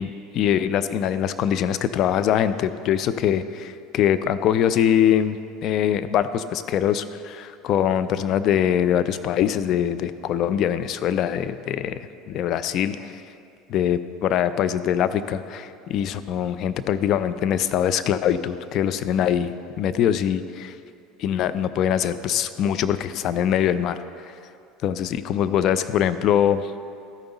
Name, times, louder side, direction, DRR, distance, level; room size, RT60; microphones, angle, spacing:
voice 1, 0.0-13.2 13.7-20.7 21.2-24.0 24.8-26.8, left 9 dB, 55° left, 13 dB, 0.4 m, -23 dB
13.5 x 5.2 x 3.9 m, 2.5 s
hypercardioid pair, 85°, 0 cm